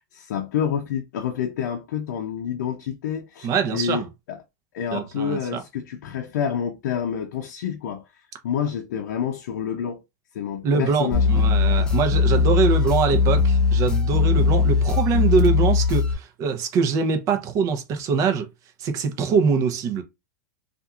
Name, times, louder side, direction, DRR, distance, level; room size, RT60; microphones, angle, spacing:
voice 1, 0.0-4.4 4.7-8.0 8.4-10.0 10.3-11.3 11.7-11.9, left 8 dB, 75° left, 0.5 m, -28 dB
voice 2, 3.4-4.1 4.9-5.6 10.6-18.5 18.8-20.0, right 5 dB, 35° right, 0.7 m, -23 dB
sound 1, 11.1-16.1, left 5 dB, 10° left, 0.6 m, -19 dB
2.8 x 2.5 x 2.4 m
supercardioid pair, 140°, 9 cm